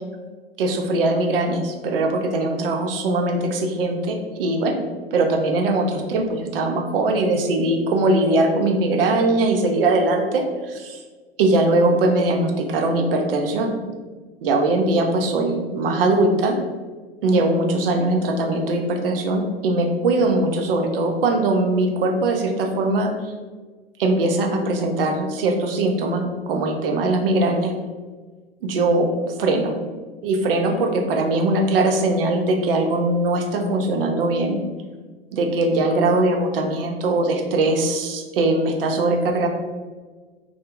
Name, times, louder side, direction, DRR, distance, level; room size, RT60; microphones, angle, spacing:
voice 1, 0.6-4.8 5.1-11.0 11.4-13.8 14.4-16.6 17.2-23.1 24.0-27.7 28.6-29.1 29.4-29.8 30.2-34.6 35.3-39.5, right 2 dB, 65° right, 4 dB, 0.5 m, -21 dB
2.5 x 2.0 x 2.9 m, 1.4 s
figure-of-eight pair, 80°, 31 cm